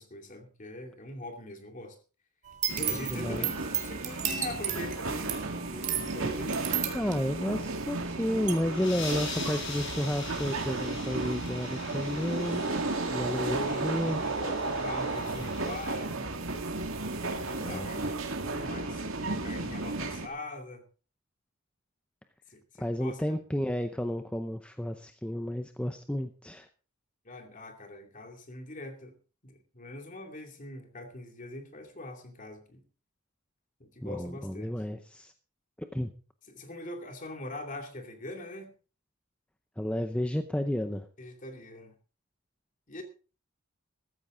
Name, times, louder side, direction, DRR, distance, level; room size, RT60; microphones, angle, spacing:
voice 1, 0.0-2.0 2.7-6.6 13.3-16.3 17.2-18.0 18.4-20.8 22.5-23.4 27.2-29.2 29.4-32.8 33.8-34.7 36.5-38.7 41.2-41.9 42.9-43.0, left 2 dB, 35° left, 2.5 m, -42 dB
sound 1, 2.5-8.1 8.5-8.6, right 9 dB, 35° right, 2.4 m, -34 dB
sound 2, 2.7-20.3, right 2 dB, 70° right, 2.1 m, -34 dB
voice 2, 2.9-3.5 6.2-6.3 6.9-12.7 13.1-14.2 17.6-17.9 22.8-26.7 34.0-35.3 35.8-36.1 39.8-41.1, equal, 5° left, 0.7 m, -32 dB
sound 3, 8.6-15.9, left 4 dB, 60° left, 5.2 m, -43 dB
14.5 x 14.0 x 3.8 m
head